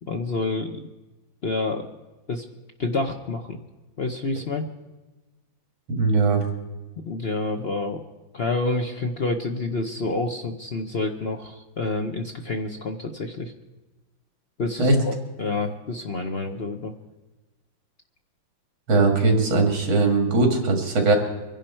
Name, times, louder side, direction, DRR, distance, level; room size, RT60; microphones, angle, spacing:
voice 1, 0.0-0.8 1.4-1.9 2.3-2.4 2.8-3.6 4.0-4.6 7.1-8.0 8.3-13.5 14.6-16.9, left 3 dB, 60° left, 4 dB, 0.6 m, -28 dB
voice 2, 6.0-6.4 14.8-15.0 18.9-21.2, right 3 dB, 75° right, 3 dB, 3.0 m, -19 dB
24.5 x 10.5 x 4.4 m, 1.1 s
omnidirectional pair, 2.2 m